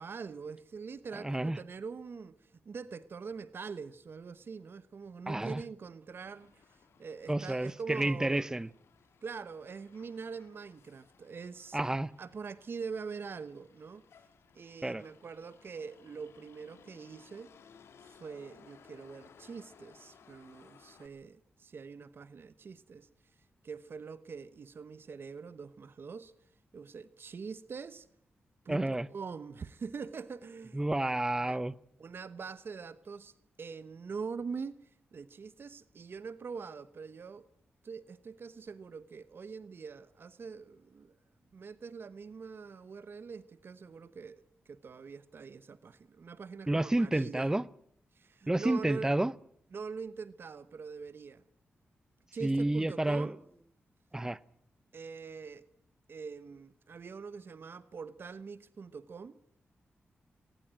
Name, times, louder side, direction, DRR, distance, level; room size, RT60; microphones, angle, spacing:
voice 1, 0.0-8.5 9.2-11.8 12.2-14.1 14.5-17.5 18.0-23.1 23.6-26.3 26.7-28.1 28.6-30.8 31.4-31.6 32.0-37.5 37.8-41.2 41.5-47.5 48.1-49.1 49.7-51.4 52.3-53.4 54.9-55.7 56.1-59.4, right 5 dB, 60° right, 1.1 m, -44 dB
voice 2, 1.1-1.6 5.3-5.6 7.3-8.7 11.7-12.1 14.8-15.0 28.7-29.1 30.7-31.7 46.7-47.6 48.5-49.3 52.4-53.3 54.1-54.4, right 1 dB, 15° right, 0.8 m, -30 dB
Motor vehicle (road), 6.2-21.1, left 7 dB, 90° left, 2.3 m, -61 dB
20.5 x 19.5 x 7.7 m
cardioid pair, 70°, 4 cm